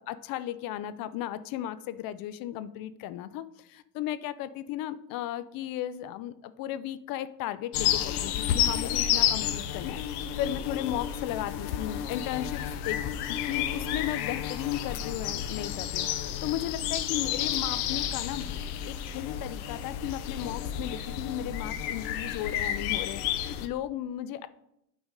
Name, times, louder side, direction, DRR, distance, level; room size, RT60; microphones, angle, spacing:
voice 1, 0.0-13.0 13.3-18.4 18.8-24.5, left 12 dB, 50° left, 14 dB, 0.5 m, -35 dB
sound 1, 7.7-23.7, left 10 dB, 75° left, 0.8 m, -31 dB
8.1 x 4.0 x 5.1 m, 0.80 s
supercardioid pair, 95°, 46 cm